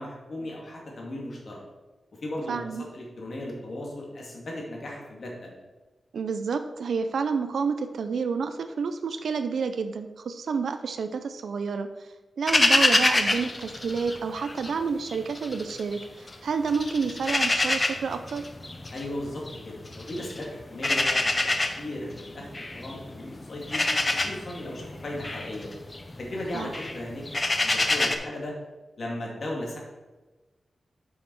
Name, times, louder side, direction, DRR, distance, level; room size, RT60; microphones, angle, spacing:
voice 1, 0.0-1.6 2.2-5.6 18.9-21.5 21.8-25.7 26.2-28.5 29.0-29.8, left 1 dB, 55° left, -2 dB, 2.3 m, -36 dB
voice 2, 2.5-2.8 6.1-12.1 12.4-18.5 26.5-26.7, right 5 dB, 85° right, 9 dB, 0.5 m, -29 dB
sound 1, 12.5-14.7 15.0-16.3 16.7-28.2, left 2 dB, 30° left, 0.7 m, -26 dB
7.4 x 6.5 x 4.7 m, 1.2 s
wide cardioid pair, 100°, 0 cm